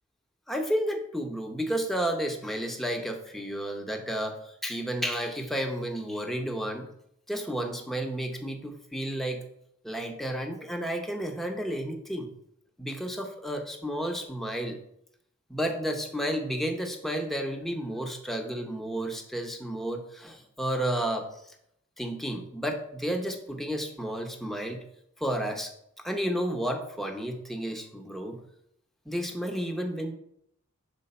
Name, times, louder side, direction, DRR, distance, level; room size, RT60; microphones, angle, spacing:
voice 1, 0.5-6.9 7.3-9.4 9.8-12.3 12.8-14.8 15.5-21.3 22.0-24.8 25.2-25.7 26.0-28.4 29.1-30.1, right 1 dB, ahead, 2 dB, 0.8 m, -32 dB
6.8 x 4.4 x 4.3 m, 0.74 s
head